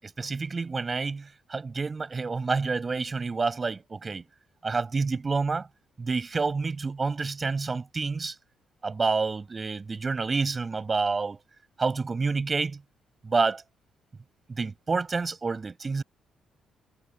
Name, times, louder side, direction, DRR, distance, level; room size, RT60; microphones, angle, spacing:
voice 1, 0.0-4.2 4.6-5.7 6.0-8.4 8.8-11.4 11.8-12.8 13.2-13.6 14.5-16.0, right 4 dB, 30° right, 7.5 m, -28 dB
cardioid pair, 90°, 0 cm